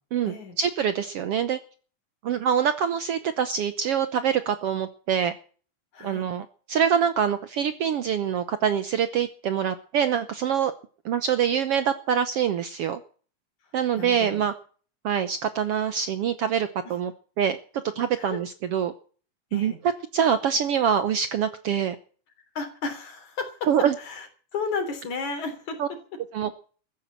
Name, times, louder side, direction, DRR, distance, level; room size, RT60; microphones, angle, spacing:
voice 1, 0.1-1.6 2.2-5.3 6.0-10.7 11.0-13.0 13.7-14.5 15.0-17.1 17.4-17.6 18.0-18.9 19.5-19.7 20.1-22.0 23.7-23.9 25.8-25.9 26.3-26.5, right 8 dB, 65° right, 11 dB, 1.5 m, -25 dB
voice 2, 5.9-6.3 13.9-14.4 16.8-16.9 18.2-18.4 19.5-19.8 22.5-23.5 24.0-24.3 24.5-25.8, left 4 dB, 65° left, 7 dB, 4.9 m, -33 dB
14.5 x 10.5 x 7.4 m, 0.41 s
omnidirectional pair, 3.6 m